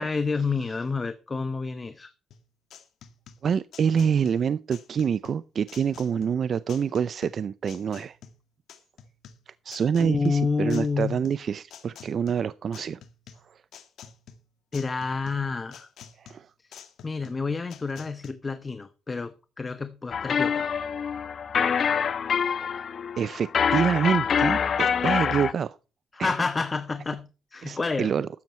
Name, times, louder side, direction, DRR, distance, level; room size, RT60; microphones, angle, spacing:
voice 1, 0.0-2.1 10.0-11.2 14.7-15.9 16.6-16.8 17.0-20.8 26.1-28.1, left 4 dB, 30° left, 0.9 m, -29 dB
sound 1, 2.3-18.3, left 7 dB, 70° left, 1.8 m, -49 dB
voice 2, 3.4-8.2 9.5-13.0 13.4-13.6 16.2-16.5 23.2-25.8 26.2-26.3 27.6-28.3, right 7 dB, 55° right, 0.5 m, -26 dB
sound 2, 20.1-25.5, left 7 dB, 55° left, 1.1 m, -25 dB
13.0 x 9.1 x 4.3 m
cardioid pair, 90°, 0 cm